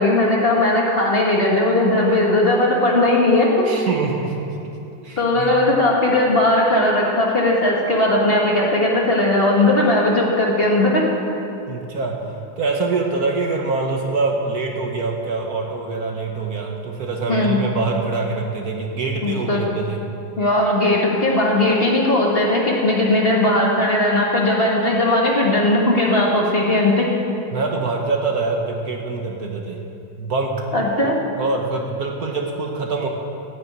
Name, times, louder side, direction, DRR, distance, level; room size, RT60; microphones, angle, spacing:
voice 1, 0.0-3.6 5.2-11.0 17.3-17.6 19.2-19.6 20.4-27.1 30.7-31.1, left 1 dB, 30° left, -2 dB, 1.8 m, -18 dB
voice 2, 3.6-4.4 5.0-5.5 11.7-12.2 12.6-20.0 27.5-29.8 30.2-30.7 31.0-33.1, right 3 dB, 55° right, 1 dB, 1.4 m, -24 dB
14.5 x 7.1 x 8.7 m, 2.8 s
omnidirectional pair, 2.0 m